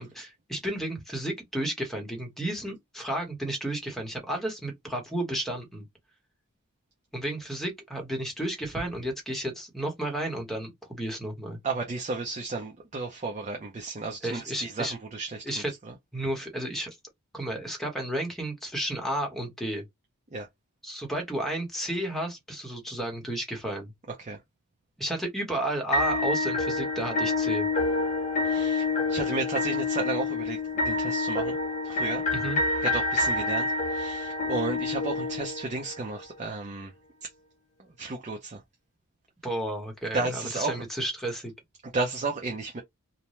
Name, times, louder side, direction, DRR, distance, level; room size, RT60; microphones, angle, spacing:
voice 1, 0.0-5.8 7.1-11.6 14.2-14.9 15.5-15.7 16.1-17.0 17.3-19.8 20.8-23.9 25.0-27.7 32.3-32.6 39.4-41.5, right 1 dB, ahead, 1.0 m, -32 dB
voice 2, 11.6-15.6 20.3-20.5 24.2-24.4 28.4-31.6 31.8-32.2 32.8-36.9 37.2-37.3 37.8-38.6 40.1-40.8 41.8-42.8, right 3 dB, 30° right, 0.5 m, -33 dB
sound 1, 25.9-36.0, left 3 dB, 35° left, 1.0 m, -27 dB
2.6 x 2.2 x 3.0 m
head